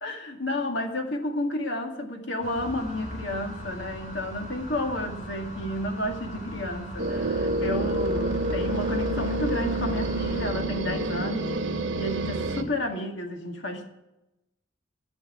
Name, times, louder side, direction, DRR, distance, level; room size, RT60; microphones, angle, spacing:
voice 1, 0.0-11.5 11.9-13.9, left 1 dB, 60° left, 3 dB, 2.0 m, -31 dB
sound 1, 2.4-10.5, equal, 40° left, 3.2 m, -40 dB
sound 2, 7.0-12.6, right 2 dB, 65° right, 1.3 m, -28 dB
13.5 x 6.5 x 8.6 m, 0.93 s
head